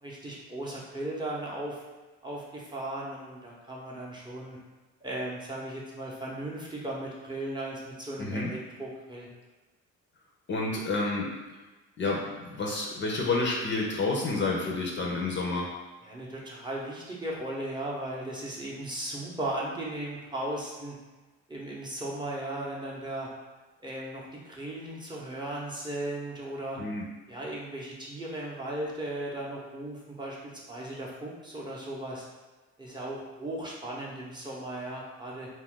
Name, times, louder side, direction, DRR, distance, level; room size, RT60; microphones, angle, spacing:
voice 1, 0.0-1.8 2.2-4.6 5.0-9.3 16.0-20.9 21.5-23.3 23.8-26.8 27.3-30.4 30.7-32.3 32.8-35.5, right 1 dB, 15° right, -5 dB, 0.7 m, -36 dB
voice 2, 8.2-8.5 10.5-11.3 12.0-15.7 26.8-27.0, left 3 dB, 40° left, -2 dB, 0.5 m, -29 dB
2.4 x 2.2 x 3.6 m, 1.2 s
cardioid pair, 90°, 31 cm